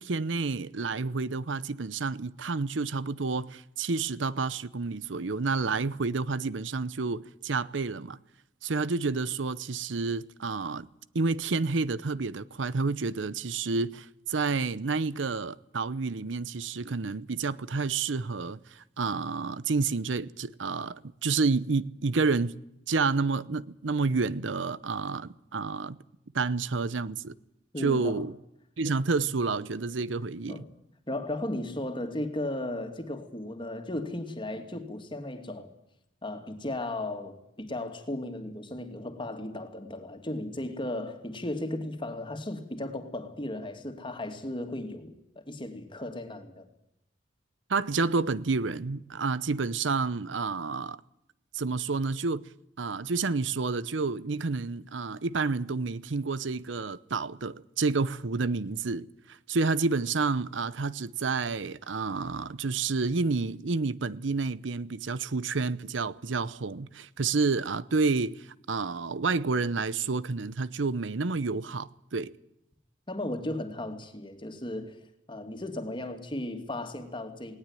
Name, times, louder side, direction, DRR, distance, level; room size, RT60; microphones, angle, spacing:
voice 1, 0.0-8.2 8.6-10.9 11.1-22.6 22.9-26.0 26.3-27.3 27.8-28.3 28.8-30.6 47.7-51.0 51.5-52.5 52.8-72.4, right 4 dB, 85° right, 0.8 m, -29 dB
voice 2, 27.7-28.2 29.2-29.3 30.5-30.7 31.1-35.7 36.2-46.7 73.1-75.0 75.3-77.6, left 1 dB, 25° left, 2.6 m, -35 dB
19.5 x 18.5 x 9.1 m
head